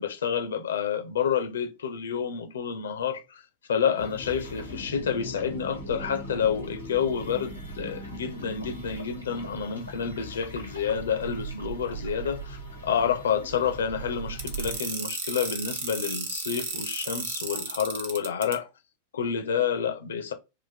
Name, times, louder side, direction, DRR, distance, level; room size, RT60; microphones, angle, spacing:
voice 1, 0.0-3.4 3.7-18.7 19.1-20.3, left 7 dB, 65° left, 0.7 m, -29 dB
sound 1, 4.0-14.8, right 2 dB, 90° right, 1.4 m, -39 dB
sound 2, 14.4-18.5, right 4 dB, 60° right, 1.0 m, -33 dB
3.9 x 2.5 x 3.4 m
figure-of-eight pair, 90°, 0 cm